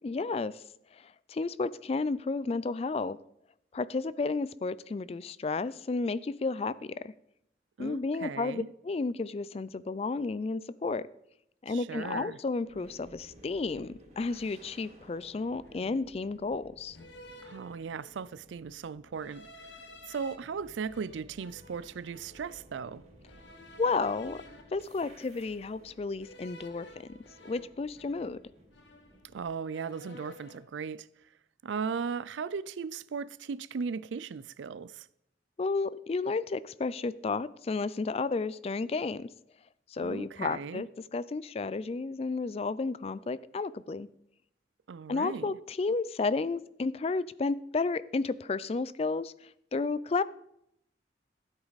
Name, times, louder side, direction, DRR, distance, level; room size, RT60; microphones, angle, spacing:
voice 1, 0.0-0.6 1.3-3.2 3.7-7.1 7.8-11.0 11.6-17.0 23.8-24.4 24.7-26.9 27.4-28.4 35.6-39.3 39.9-44.1 45.1-49.3 49.7-50.2, left 3 dB, 35° left, 0.3 m, -32 dB
voice 2, 7.8-8.7 11.7-12.4 17.4-19.5 20.1-23.0 29.3-31.1 31.6-35.1 40.0-40.8 44.9-45.5, right 6 dB, 85° right, 0.4 m, -37 dB
sound 1, 12.6-29.5, right 1 dB, 35° right, 2.3 m, -57 dB
sound 2, 14.5-14.8 15.6-16.2 16.9-18.3 19.1-20.4 20.9-22.5 23.3-25.6 26.2-28.5 28.7-29.4 29.7-30.7, left 1 dB, 80° left, 1.2 m, -53 dB
13.0 x 8.2 x 4.0 m
head